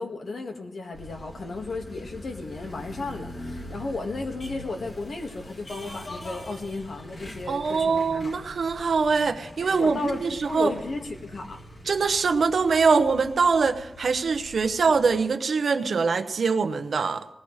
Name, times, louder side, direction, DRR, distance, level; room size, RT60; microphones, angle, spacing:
voice 1, 0.0-8.5 9.7-11.6, left 3 dB, 75° left, 3 dB, 1.7 m, -34 dB
sound 1, 0.9-15.2, left 1 dB, 50° left, 2.5 m, -43 dB
voice 2, 7.5-10.7 11.9-17.2, right 5 dB, 75° right, 7 dB, 1.0 m, -23 dB
19.5 x 16.5 x 3.3 m, 0.96 s
wide cardioid pair, 95°, 0 cm